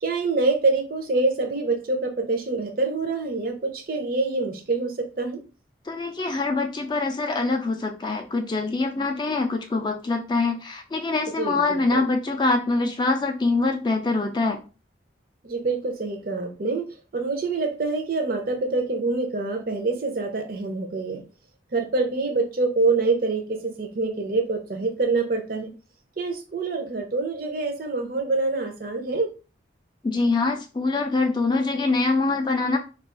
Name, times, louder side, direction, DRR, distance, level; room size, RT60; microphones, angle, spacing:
voice 1, 0.0-5.4 11.4-12.1 15.4-21.2 21.7-25.7 26.2-29.3, right 3 dB, 50° right, 5 dB, 0.5 m, -26 dB
voice 2, 5.9-14.6 30.0-32.8, left 3 dB, 25° left, 4 dB, 0.3 m, -24 dB
2.3 x 2.3 x 3.7 m, 0.33 s
head